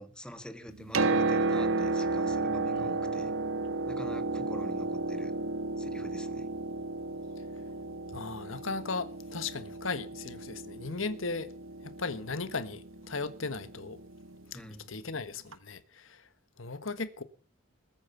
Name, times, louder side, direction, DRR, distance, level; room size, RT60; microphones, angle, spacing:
voice 1, 0.0-3.3 3.9-5.3 5.8-6.5 14.5-14.9, equal, 5° left, 1.6 m, -46 dB
Piano, 0.7-14.4 15.5-15.6, right 3 dB, 85° right, 1.4 m, -33 dB
voice 2, 8.1-11.5 11.8-14.0 14.5-14.6 14.9-16.3 16.6-17.2, left 4 dB, 80° left, 1.4 m, -37 dB
21.0 x 9.0 x 6.9 m
head